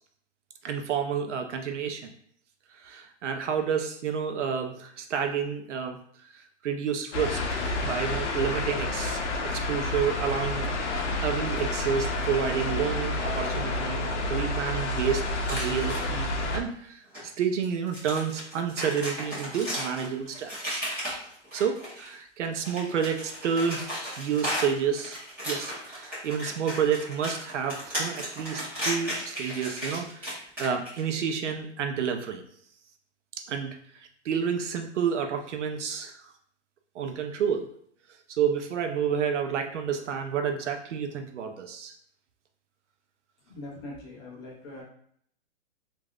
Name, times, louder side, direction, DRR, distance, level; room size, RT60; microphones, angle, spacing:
voice 1, 0.6-2.1 2.8-6.0 6.6-17.0 17.4-20.8 21.5-23.9 24.2-32.4 33.4-33.8 34.2-36.1 37.0-37.7 38.3-41.9, right 7 dB, 85° right, 5 dB, 0.6 m, -30 dB
sound 1, 7.1-16.6, left 2 dB, 80° left, 0.6 m, -29 dB
sound 2, 15.4-16.2 17.1-17.2 17.6-22.1 22.5-31.0, equal, 5° right, 0.9 m, -35 dB
voice 2, 43.5-44.8, left 2 dB, 25° left, -4 dB, 0.6 m, -42 dB
3.2 x 2.5 x 2.4 m, 0.65 s
hypercardioid pair, 165°, 35 cm